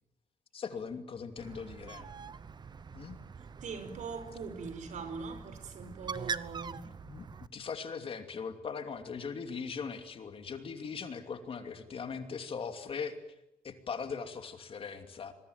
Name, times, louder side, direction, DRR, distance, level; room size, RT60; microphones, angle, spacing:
voice 1, 0.5-2.1 2.9-3.2 7.0-7.3 7.5-13.2 13.6-15.3, left 5 dB, 40° left, 2.8 m, -40 dB
Bird, 1.4-7.5, right 5 dB, 30° right, 1.0 m, -43 dB
voice 2, 3.6-6.9, right 4 dB, 60° right, 5.0 m, -42 dB
26.5 x 22.5 x 9.7 m
cardioid pair, 140°, 14 cm